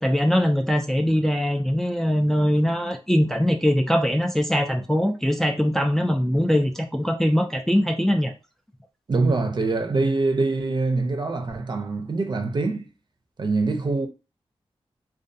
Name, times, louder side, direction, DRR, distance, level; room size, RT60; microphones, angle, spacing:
voice 1, 0.0-8.3, equal, 5° left, 0.4 m, -22 dB
voice 2, 9.1-12.9 13.4-14.1, right 3 dB, 45° right, 0.6 m, -24 dB
2.3 x 2.3 x 2.6 m
cardioid pair, 55°, 10 cm